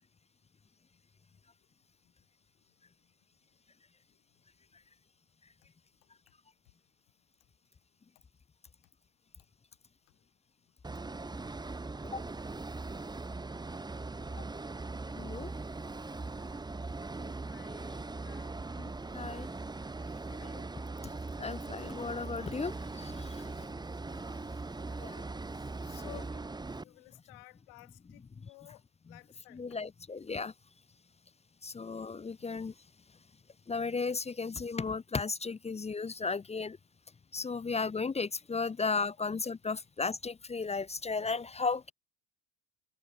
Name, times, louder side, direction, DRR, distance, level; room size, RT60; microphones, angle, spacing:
sound 1, 10.8-26.8, right 3 dB, 10° right, 1.7 m, -40 dB
voice 1, 15.2-15.5 18.8-19.5 21.4-23.3 25.0-25.2 29.5-30.5 31.6-32.7 33.7-36.8 37.3-41.9, left 4 dB, 15° left, 1.0 m, -35 dB
voice 2, 17.1-18.5 20.3-20.7 23.3-23.7 25.8-26.3 26.8-28.2 28.5-28.8 29.1-29.6 39.2-39.3, left 28 dB, 80° left, 7.7 m, -55 dB
supercardioid pair, 130°, 44 cm